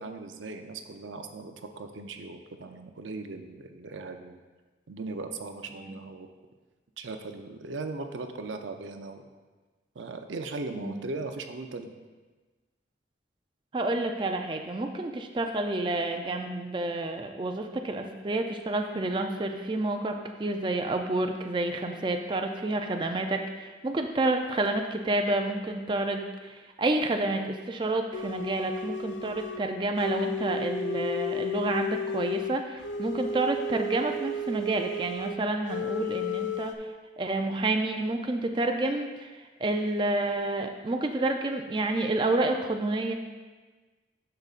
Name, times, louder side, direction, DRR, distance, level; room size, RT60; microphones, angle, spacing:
voice 1, 0.0-4.4 4.9-6.3 7.0-9.2 9.9-11.9, right 3 dB, 90° right, 5 dB, 0.6 m, -38 dB
voice 2, 13.7-36.9 37.2-43.1, right 2 dB, 25° right, 4 dB, 0.4 m, -29 dB
sound 1, 28.1-29.7 30.0-35.4 35.7-36.8, left 3 dB, 80° left, 0.6 m, -33 dB
10.5 x 6.7 x 2.5 m, 1.3 s
head